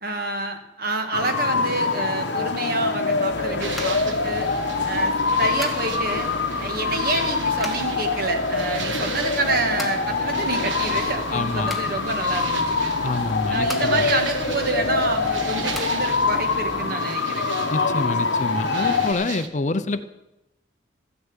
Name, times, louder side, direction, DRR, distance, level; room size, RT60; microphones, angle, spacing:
voice 1, 0.0-4.5 4.8-6.3 6.6-12.9 13.5-17.6 18.7-19.0, right 2 dB, 50° right, 5 dB, 1.7 m, -28 dB
sound 1, 1.1-19.1, left 4 dB, 65° left, 1.0 m, -24 dB
sound 2, 3.3-16.8, equal, ahead, 1.0 m, -40 dB
sound 3, 3.6-19.5, right 5 dB, 80° right, 1.0 m, -37 dB
voice 2, 11.3-11.7 13.0-14.1 17.7-20.0, left 3 dB, 40° left, 12 dB, 0.5 m, -27 dB
14.0 x 7.0 x 8.9 m, 0.95 s
head